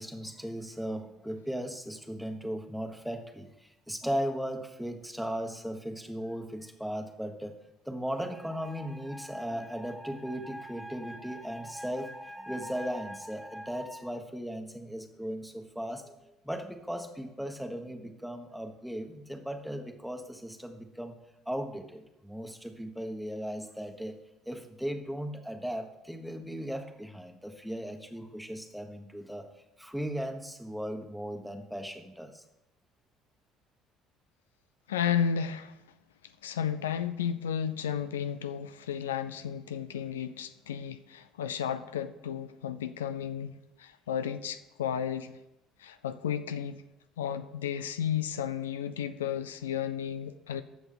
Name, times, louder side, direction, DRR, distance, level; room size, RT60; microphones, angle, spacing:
voice 1, 0.0-7.6 7.9-16.1 16.4-21.2 21.4-24.2 24.5-29.5 29.8-32.4, equal, ahead, 5 dB, 1.3 m, -37 dB
voice 2, 34.9-35.7 36.4-45.3 45.8-46.8 47.2-50.6, left 8 dB, 90° left, 12 dB, 0.4 m, -33 dB
14.5 x 6.0 x 3.8 m, 0.96 s
hypercardioid pair, 60°, 0 cm